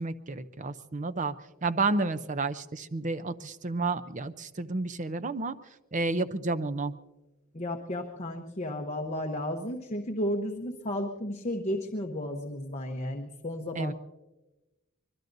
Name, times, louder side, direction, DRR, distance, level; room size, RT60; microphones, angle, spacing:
voice 1, 0.0-1.3 1.6-5.5 5.9-6.9 13.8-13.9, right 3 dB, 35° right, 12 dB, 0.6 m, -31 dB
voice 2, 7.5-13.9, left 1 dB, 30° left, 2 dB, 1.0 m, -33 dB
25.0 x 21.5 x 2.7 m, 1.1 s
head